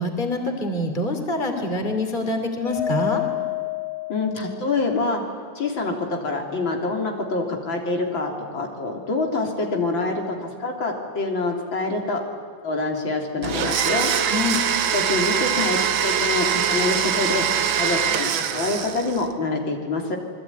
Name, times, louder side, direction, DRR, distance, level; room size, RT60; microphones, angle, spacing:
voice 1, 0.0-3.2 14.3-14.6, left 2 dB, 25° left, 5 dB, 3.2 m, -25 dB
Mallet percussion, 2.6-4.9, left 13 dB, 55° left, 8.8 m, -29 dB
voice 2, 4.1-5.2 5.6-5.9 6.2-12.2 12.6-14.1 14.9-17.5 17.8-20.2, left 3 dB, 75° left, 2 dB, 4.0 m, -26 dB
Domestic sounds home sounds, 13.4-19.3, right 8 dB, 85° right, 2.0 m, -23 dB
27.5 x 21.5 x 9.6 m, 2.1 s
omnidirectional pair, 2.1 m